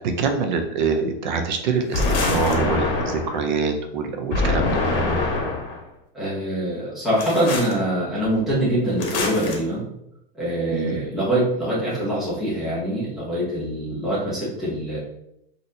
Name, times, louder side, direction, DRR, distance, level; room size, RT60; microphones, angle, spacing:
voice 1, 0.2-5.0 10.7-11.0, right 5 dB, 50° right, 5 dB, 0.5 m, -25 dB
sound 1, 1.9-3.4 4.3-5.8 7.2-7.7 9.0-9.6, left 2 dB, 70° left, 1.1 m, -24 dB
voice 2, 6.1-9.8 10.3-15.0, right 1 dB, ahead, -9 dB, 0.7 m, -24 dB
4.0 x 2.5 x 2.7 m, 0.79 s
supercardioid pair, 180°, 30 cm